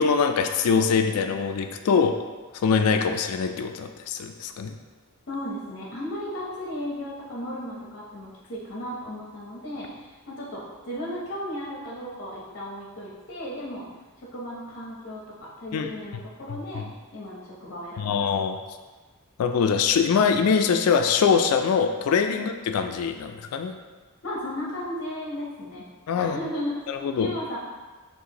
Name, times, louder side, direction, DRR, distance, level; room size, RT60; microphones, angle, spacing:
voice 1, 0.0-2.1 2.6-4.8 15.7-15.9 16.5-16.8 18.0-18.6 19.4-23.7 26.1-26.4 26.9-27.3, left 6 dB, 75° left, 6 dB, 0.3 m, -23 dB
voice 2, 5.3-13.9 14.3-16.8 17.1-18.3 24.2-25.8 26.2-27.6, left 1 dB, 55° left, -4 dB, 0.8 m, -35 dB
6.4 x 2.5 x 2.9 m, 1.3 s
head